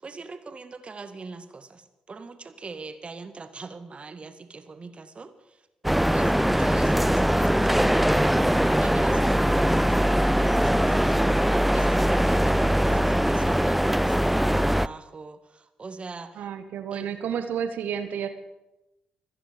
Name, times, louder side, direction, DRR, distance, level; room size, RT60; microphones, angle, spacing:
voice 1, 0.0-5.7 6.1-16.4 16.9-17.1, right 4 dB, 35° right, 9 dB, 1.9 m, -42 dB
sound 1, 5.8-14.9, equal, 5° right, 0.5 m, -21 dB
voice 2, 16.3-18.3, right 8 dB, 60° right, 8 dB, 1.6 m, -31 dB
25.5 x 10.0 x 5.2 m, 0.95 s
figure-of-eight pair, 40°, 3 cm